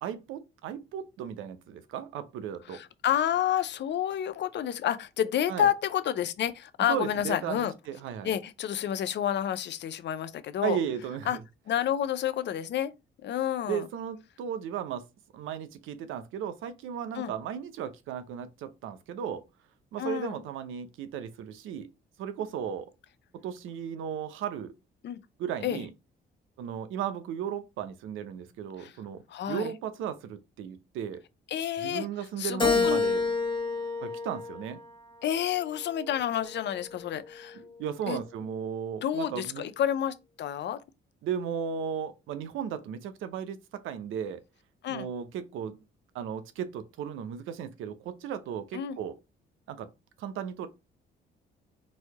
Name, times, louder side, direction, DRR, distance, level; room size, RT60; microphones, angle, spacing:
voice 1, 0.0-2.8 5.5-5.7 6.9-8.4 10.6-11.4 13.7-15.0 15.3-19.4 19.9-21.9 22.2-22.9 23.4-24.7 25.4-25.9 26.6-31.2 31.8-33.3 34.0-34.8 37.5-39.7 41.2-44.4 44.9-45.8 46.1-49.2 49.7-49.9 50.2-50.7, right 8 dB, 90° right, 0.7 m, -35 dB
voice 2, 2.7-7.7 8.2-10.8 11.3-11.4 11.7-12.9 13.2-13.9 17.1-17.3 20.0-20.4 25.0-25.2 25.6-25.8 28.8-28.9 29.3-29.7 31.5-32.1 32.4-33.0 35.2-37.6 38.1-38.2 39.0-40.8 44.8-45.1 48.7-49.0, left 10 dB, 60° left, 0.6 m, -29 dB
Keyboard (musical), 32.6-35.1 35.7-36.9, left 4 dB, 25° left, 1.4 m, -29 dB
4.2 x 2.7 x 4.6 m
cardioid pair, 90°, 20 cm